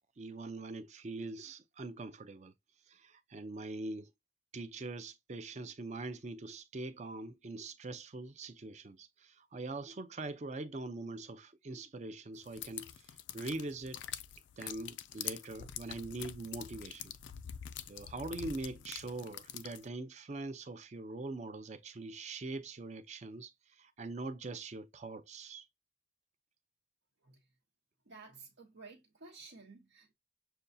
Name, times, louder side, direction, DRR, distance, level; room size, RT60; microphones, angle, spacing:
voice 1, 0.2-2.5 2.9-4.1 4.5-14.0 14.6-17.1 17.9-25.7, right 2 dB, 40° right, 0.5 m, -43 dB
sound 1, 12.4-19.9, left 10 dB, 80° left, 0.4 m, -45 dB
voice 2, 28.1-30.1, right 4 dB, 80° right, 0.9 m, -54 dB
6.8 x 2.3 x 2.6 m
head